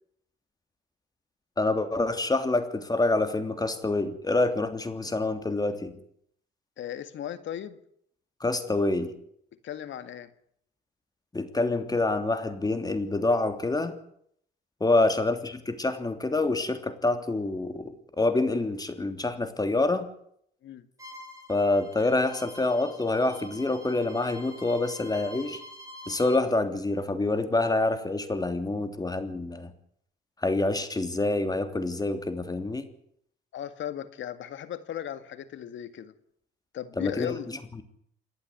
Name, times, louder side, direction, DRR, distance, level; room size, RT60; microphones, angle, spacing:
voice 1, 1.6-5.9 8.4-9.1 11.3-14.0 14.8-17.9 18.2-20.1 21.5-25.6 26.1-29.7 30.4-32.9 37.0-37.4, left 2 dB, 20° left, 9 dB, 3.2 m, -26 dB
voice 2, 6.8-7.8 9.6-10.3 14.9-15.1 20.6-20.9 33.5-36.1 36.7-37.5, left 10 dB, 70° left, 12 dB, 1.9 m, -36 dB
Bowed string instrument, 21.0-26.4, left 1 dB, 15° right, 6.7 m, -46 dB
28.5 x 11.5 x 9.8 m, 0.69 s
cardioid pair, 90°, 20 cm